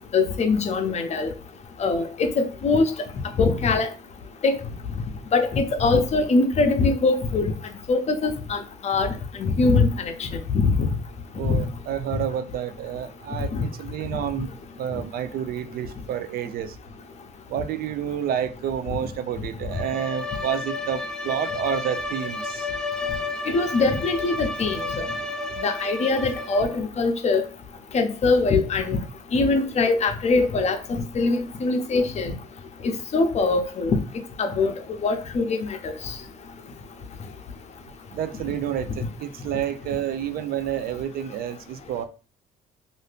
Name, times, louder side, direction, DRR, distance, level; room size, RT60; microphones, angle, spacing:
voice 1, 0.1-1.3 1.8-2.9 3.4-3.9 4.4-4.5 5.3-7.5 7.9-9.1 9.4-10.7 11.5-11.6 13.5-13.6 23.5-25.0 25.6-27.4 27.9-29.0 29.3-32.3 33.1-34.0 34.4-34.7 35.0-35.6 35.8-35.9, left 3 dB, 40° left, 0.7 m, -22 dB
voice 2, 11.3-14.5 14.8-16.8 17.5-22.7 38.1-42.0, right 9 dB, 60° right, 0.4 m, -29 dB
Bowed string instrument, 19.7-26.8, left 2 dB, 5° left, 0.4 m, -31 dB
2.6 x 2.6 x 3.3 m
cardioid pair, 110°, 17 cm